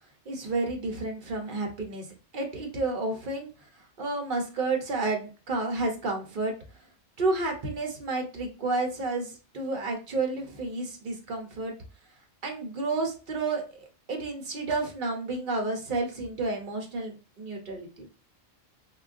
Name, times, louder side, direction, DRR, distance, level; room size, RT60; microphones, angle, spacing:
voice 1, 0.3-2.1 2.3-3.5 4.0-6.5 7.2-11.7 12.4-13.6 14.1-18.0, right 3 dB, 50° right, 2 dB, 0.8 m, -30 dB
3.7 x 2.2 x 2.5 m, 0.33 s
omnidirectional pair, 1.3 m